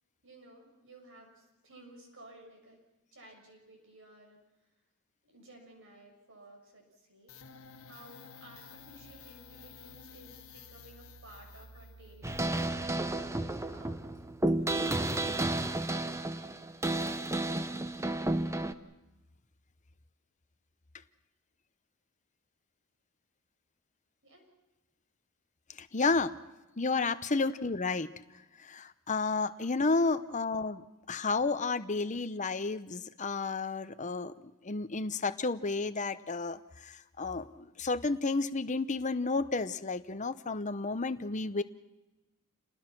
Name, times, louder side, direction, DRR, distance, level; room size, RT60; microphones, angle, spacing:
voice 1, 0.2-2.8 3.1-4.4 5.2-7.4 7.8-14.0 14.4-15.4 24.2-24.4 27.4-27.6 30.3-30.7, right 1 dB, 60° right, 2 dB, 7.3 m, -55 dB
sound 1, 7.3-15.7, left 3 dB, 65° left, 1.7 m, -53 dB
sound 2, 12.2-18.7, right 2 dB, 15° right, 0.8 m, -32 dB
voice 2, 25.8-26.4 26.8-28.1 28.6-30.8 31.1-34.3 34.6-41.6, left 3 dB, 35° left, 11 dB, 0.9 m, -31 dB
29.0 x 19.5 x 6.1 m, 1.0 s
head